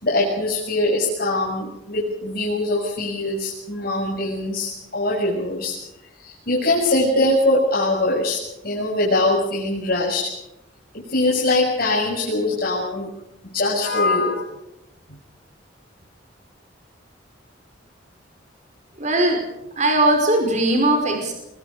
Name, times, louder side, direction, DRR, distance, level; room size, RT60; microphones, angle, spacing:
voice 1, 0.0-5.8 6.2-10.3 10.9-13.1 13.5-14.5, left 2 dB, 55° left, -3 dB, 6.4 m, -22 dB
voice 2, 19.0-19.4 19.8-21.3, right 1 dB, 40° right, 3 dB, 5.1 m, -19 dB
25.5 x 22.5 x 5.0 m, 0.89 s
head